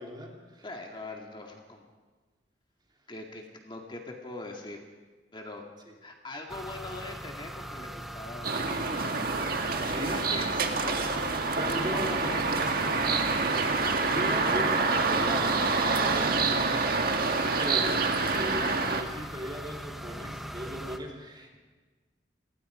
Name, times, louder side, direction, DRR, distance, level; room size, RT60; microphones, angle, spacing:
voice 1, 0.0-0.7 9.8-10.3 11.6-12.5 14.1-21.6, equal, 25° right, 0 dB, 3.3 m, -38 dB
voice 2, 0.6-1.9 3.1-4.8 5.3-5.6 6.0-11.3 11.7-13.5, left 2 dB, 25° left, 1 dB, 2.1 m, -42 dB
sound 1, 6.5-21.0, equal, ahead, 1.2 m, -41 dB
sound 2, 8.4-19.0, right 4 dB, 55° right, 1.7 m, -27 dB
29.0 x 19.0 x 5.0 m, 1.3 s
head